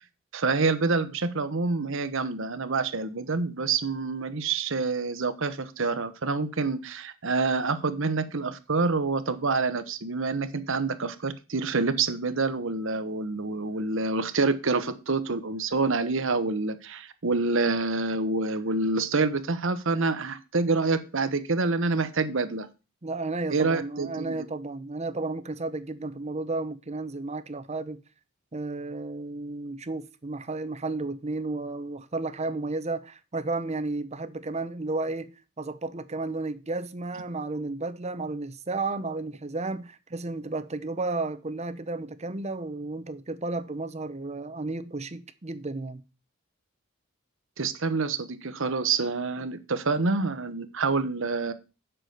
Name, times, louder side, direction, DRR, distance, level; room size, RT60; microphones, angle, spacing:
voice 1, 0.3-22.7 23.5-24.5 47.6-51.5, right 3 dB, 65° right, 1.0 m, -27 dB
voice 2, 23.0-28.0 28.5-46.0, right 3 dB, 30° right, 0.8 m, -33 dB
7.8 x 6.2 x 6.6 m
head